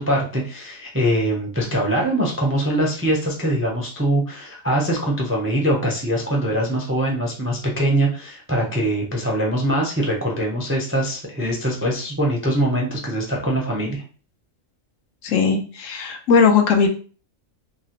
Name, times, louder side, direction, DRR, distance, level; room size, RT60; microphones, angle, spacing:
voice 1, 0.0-14.0, right 1 dB, 20° right, -1 dB, 0.3 m, -22 dB
voice 2, 15.2-16.9, left 5 dB, 70° left, 4 dB, 0.9 m, -18 dB
2.9 x 2.8 x 2.9 m, 0.38 s
omnidirectional pair, 1.4 m